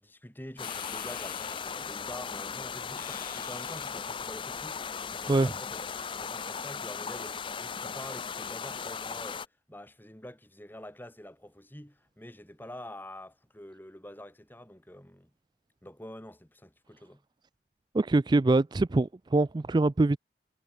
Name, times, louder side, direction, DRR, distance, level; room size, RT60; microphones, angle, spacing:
voice 1, 0.0-5.9 6.2-15.3 15.8-17.2, left 1 dB, 10° left, 2.5 m, -47 dB
sound 1, 0.6-6.3, left 10 dB, 50° left, 3.8 m, -48 dB
sound 2, 0.6-9.5, left 6 dB, 30° left, 0.5 m, -37 dB
voice 2, 17.9-20.2, right 2 dB, 25° right, 0.4 m, -24 dB
head